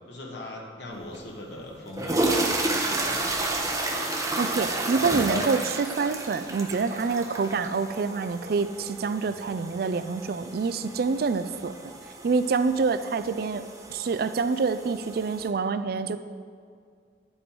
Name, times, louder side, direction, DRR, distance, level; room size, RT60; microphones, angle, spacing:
voice 1, 0.1-3.9, left 1 dB, 85° left, -1 dB, 1.6 m, -41 dB
sound 1, 1.1-1.2 1.8-15.5, right 2 dB, 20° right, 1.0 m, -31 dB
voice 2, 4.4-11.7 12.2-16.2, right 4 dB, 60° right, 11 dB, 0.4 m, -27 dB
10.5 x 8.0 x 4.6 m, 2.1 s
head